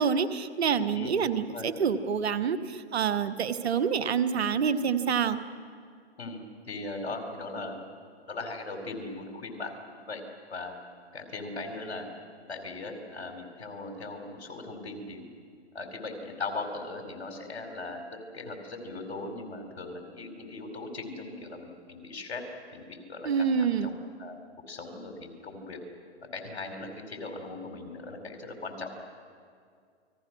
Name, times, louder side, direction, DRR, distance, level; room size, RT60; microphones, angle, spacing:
voice 1, 0.0-5.4 23.2-23.9, right 6 dB, 70° right, 12 dB, 1.5 m, -27 dB
voice 2, 0.9-1.7 6.2-7.8 8.3-9.7 10.1-10.2 10.5-10.7 11.1-12.1 12.5-15.2 15.7-22.4 22.7-24.4 24.7-25.8 26.3-28.9, left 3 dB, 70° left, 5 dB, 4.8 m, -39 dB
29.0 x 21.0 x 6.3 m, 2.2 s
hypercardioid pair, 135°, 33 cm